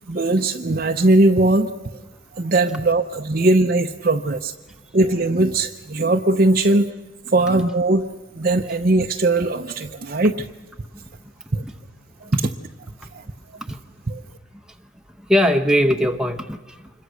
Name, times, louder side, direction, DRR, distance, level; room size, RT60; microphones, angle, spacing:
voice 1, 0.1-1.7 2.3-4.5 4.9-6.9 7.3-8.1 8.3-10.5 11.5-11.6 12.3-12.5 13.1-13.2 14.1-14.2, right 2 dB, 45° right, 3 dB, 0.7 m, -19 dB
voice 2, 15.2-16.9, equal, 5° right, 4 dB, 0.8 m, -21 dB
26.5 x 22.0 x 6.3 m, 1.2 s
head